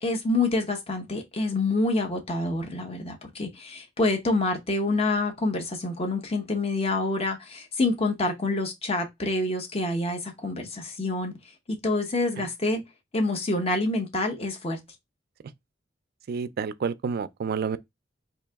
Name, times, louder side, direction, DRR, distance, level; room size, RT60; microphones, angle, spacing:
voice 1, 0.0-11.3 11.7-12.8 13.1-14.8, left 2 dB, 30° left, 0.8 m, -27 dB
voice 2, 16.3-17.8, right 6 dB, 55° right, 0.3 m, -29 dB
3.8 x 2.8 x 3.4 m
head